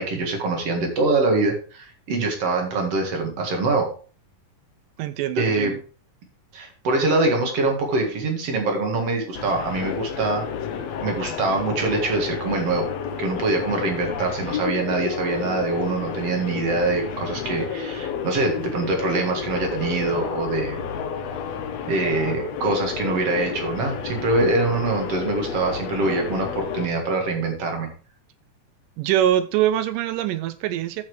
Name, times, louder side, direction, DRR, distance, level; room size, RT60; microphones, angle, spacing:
voice 1, 0.0-3.9 5.4-5.7 6.5-10.4 11.0-12.9 13.2-20.8 21.9-27.9, right 3 dB, 50° right, 3 dB, 2.6 m, -24 dB
voice 2, 5.0-5.8 29.0-31.0, right 11 dB, 85° right, 13 dB, 2.1 m, -23 dB
sound 1, 9.3-26.9, left 7 dB, 65° left, 1.9 m, -31 dB
14.0 x 5.7 x 3.2 m, 0.39 s
omnidirectional pair, 3.8 m